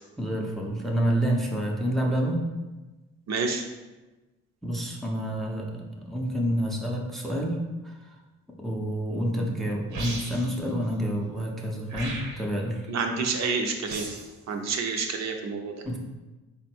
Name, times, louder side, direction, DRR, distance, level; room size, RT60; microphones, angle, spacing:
voice 1, 0.2-2.4 4.6-7.6 7.8-8.2 8.6-12.9 15.8-16.0, equal, ahead, -1 dB, 0.5 m, -28 dB
voice 2, 3.3-3.6 12.9-14.1 14.5-15.7, right 4 dB, 60° right, 3 dB, 0.6 m, -28 dB
sound 1, 9.9-10.6 11.9-12.6 13.9-14.3, right 2 dB, 90° right, 1.0 m, -36 dB
3.7 x 2.1 x 4.3 m, 1.1 s
cardioid pair, 90°, 30 cm